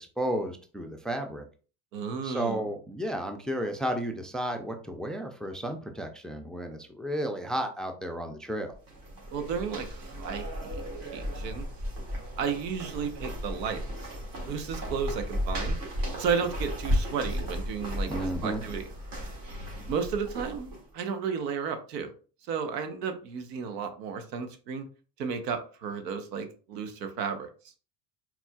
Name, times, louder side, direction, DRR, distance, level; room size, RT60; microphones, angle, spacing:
voice 1, 0.0-1.4 2.2-8.7 18.1-18.6, right 1 dB, ahead, 5 dB, 0.5 m, -33 dB
voice 2, 1.9-2.6 9.3-11.7 12.4-14.1 14.4-15.8 16.2-18.9 19.9-22.1 22.5-24.8 25.2-27.5, right 6 dB, 85° right, 7 dB, 1.0 m, -33 dB
sound 1, 8.7-20.9, equal, 45° right, 2.0 m, -34 dB
4.4 x 4.1 x 2.3 m, 0.37 s
supercardioid pair, 95°, 48 cm